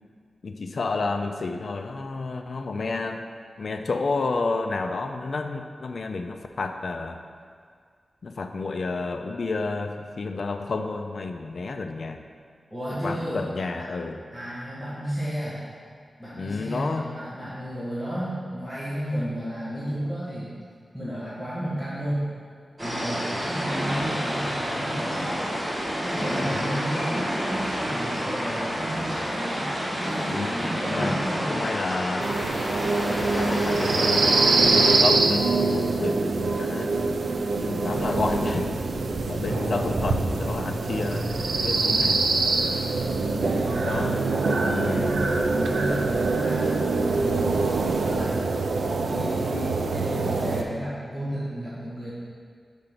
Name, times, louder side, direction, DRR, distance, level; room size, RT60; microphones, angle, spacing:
voice 1, 0.4-3.2 3.6-7.2 8.2-12.2 13.0-14.2 16.4-17.2 26.5-26.8 30.2-30.5 30.9-31.2 31.5-32.3 33.1-37.0 37.7-38.8 39.3-42.3 43.8-44.2 44.6-45.1, left 3 dB, 55° left, 6 dB, 0.4 m, -30 dB
voice 2, 12.7-13.4 14.3-15.6 16.2-20.5 20.9-22.3 22.8-25.3 26.0-31.6 37.4-38.3 43.3-47.4 48.0-48.4 49.0-52.1, equal, 5° right, -11 dB, 1.4 m, -33 dB
sound 1, 22.8-35.0, equal, 20° right, 1.5 m, -29 dB
sound 2, 32.2-50.6, right 3 dB, 85° right, 0.5 m, -24 dB
5.3 x 4.8 x 5.9 m, 2.1 s
wide cardioid pair, 125°, 0 cm